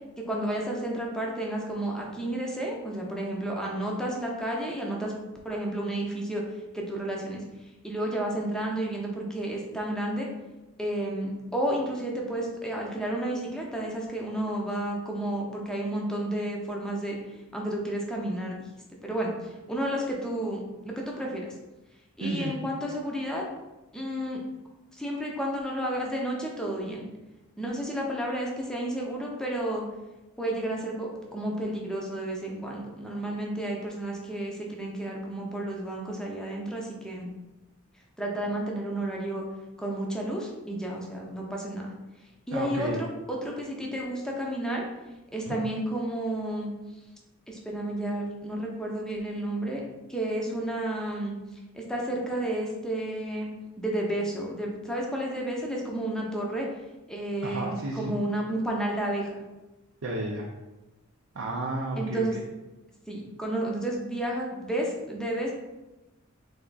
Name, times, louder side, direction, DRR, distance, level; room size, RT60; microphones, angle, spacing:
voice 1, 0.2-5.1 5.4-6.4 6.7-7.4 7.8-10.3 10.8-17.2 17.5-18.5 19.0-21.4 22.2-23.4 23.9-24.4 25.0-27.1 27.6-29.8 30.4-37.3 38.2-39.4 39.8-41.9 42.5-44.8 45.3-46.7 47.5-49.8 50.1-51.3 51.7-53.5 53.8-56.7 57.1-59.4 62.0-62.4 63.1-65.5, right 1 dB, 5° left, -2 dB, 0.7 m, -31 dB
voice 2, 22.2-22.6 42.5-43.0 45.5-45.6 57.4-58.1 60.0-60.5 61.3-62.2, right 2 dB, 65° right, -2 dB, 0.5 m, -32 dB
3.5 x 3.5 x 4.0 m, 1.0 s
head